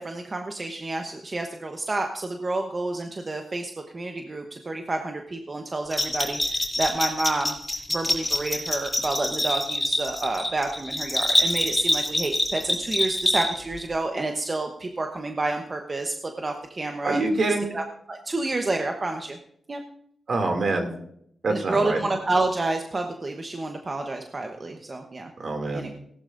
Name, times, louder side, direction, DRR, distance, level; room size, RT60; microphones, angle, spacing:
voice 1, 0.0-7.6 7.9-17.2 17.7-19.4 19.7-19.8 21.5-25.3 25.7-25.9, right 2 dB, 35° right, 3 dB, 1.0 m, -29 dB
Bell, 5.9-13.8, left 1 dB, 15° left, 3.7 m, -25 dB
voice 2, 17.0-17.7 20.3-20.9 21.4-22.0 25.4-25.9, right 2 dB, 60° right, 4 dB, 2.5 m, -25 dB
17.5 x 12.0 x 2.6 m, 0.70 s
cardioid pair, 90°, 0 cm